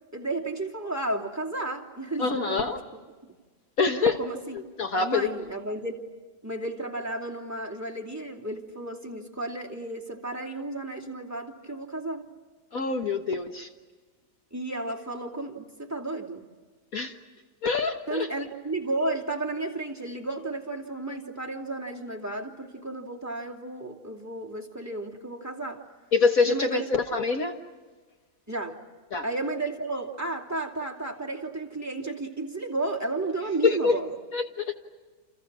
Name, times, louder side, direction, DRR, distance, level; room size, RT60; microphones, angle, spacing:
voice 1, 0.1-2.7 4.0-4.6 4.9-6.0 6.4-12.3 14.5-16.5 18.1-25.8 26.5-26.9 28.5-28.8 29.2-34.1, right 2 dB, 10° right, 1 dB, 2.6 m, -33 dB
voice 2, 2.2-2.8 3.8-4.2 4.5-5.3 12.7-13.7 16.9-17.1 17.6-18.3 26.1-27.6 29.1-29.2 33.6-34.0 34.3-34.8, left 4 dB, 55° left, 5 dB, 1.7 m, -25 dB
29.5 x 29.0 x 6.2 m, 1.3 s
omnidirectional pair, 1.8 m